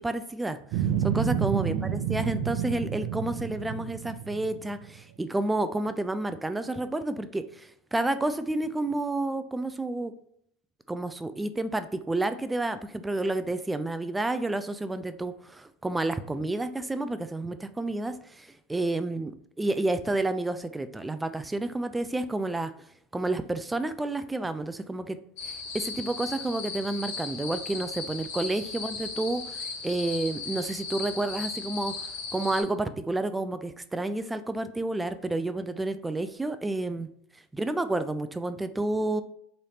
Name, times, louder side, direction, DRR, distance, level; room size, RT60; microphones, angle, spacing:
voice 1, 0.0-1.8 2.1-10.1 10.9-19.3 19.6-22.7 23.1-25.2 25.4-37.1 37.5-39.2, right 2 dB, 10° right, 11 dB, 0.3 m, -30 dB
sound 1, 0.7-5.0, right 8 dB, 60° right, 0.6 m, -29 dB
sound 2, 25.4-32.6, left 4 dB, 75° left, 1.0 m, -37 dB
3.9 x 3.2 x 2.8 m, 0.69 s
supercardioid pair, 105°, 0 cm